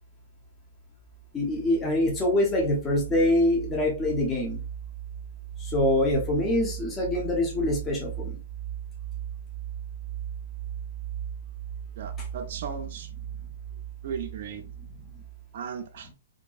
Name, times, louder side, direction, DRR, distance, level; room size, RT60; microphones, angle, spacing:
sound 1, 1.0-15.5, right 10 dB, 90° left, 0.7 m, -38 dB
voice 1, 1.3-4.6 5.6-8.4 15.1-15.2, left 1 dB, 15° left, 0.7 m, -25 dB
voice 2, 12.0-13.1 14.0-14.6 15.5-16.1, right 7 dB, 55° right, 0.4 m, -36 dB
2.6 x 2.2 x 2.3 m
hypercardioid pair, 150°, 0 cm